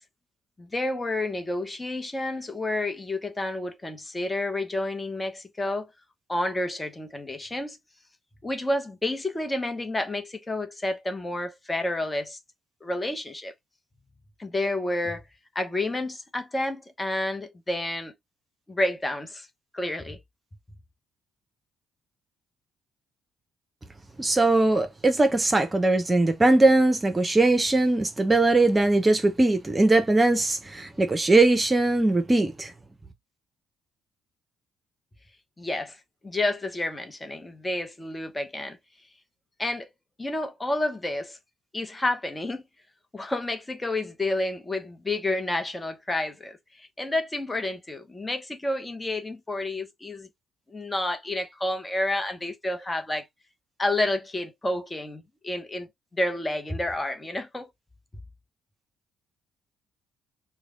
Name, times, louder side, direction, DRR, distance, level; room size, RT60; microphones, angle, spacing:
voice 1, 0.6-5.9 6.3-7.8 8.4-12.4 12.8-13.5 14.4-15.2 15.5-18.1 18.7-19.5 19.7-20.2 35.6-36.0 36.2-38.8 39.6-39.9 40.2-41.4 41.7-42.6 43.1-50.3 50.7-53.3 53.8-55.9 56.1-57.7, left 1 dB, 20° left, 0.9 m, -30 dB
voice 2, 24.2-32.7, right 2 dB, 25° right, 0.8 m, -20 dB
3.2 x 2.3 x 3.8 m
hypercardioid pair, 50°, 0 cm